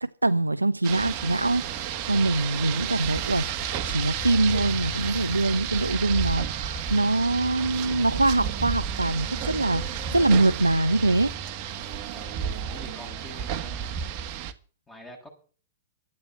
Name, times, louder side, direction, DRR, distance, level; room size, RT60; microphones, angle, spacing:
voice 1, 0.0-3.5 3.9-11.3, right 2 dB, 85° right, 0.6 m, -24 dB
Rain, 0.8-14.5, right 9 dB, 40° right, 1.6 m, -32 dB
sound 1, 1.1-11.3, left 8 dB, 30° left, 3.1 m, -42 dB
voice 2, 12.7-13.9 14.9-15.3, left 1 dB, 15° left, 7.3 m, -45 dB
13.0 x 9.5 x 7.3 m
figure-of-eight pair, 105°, 0 cm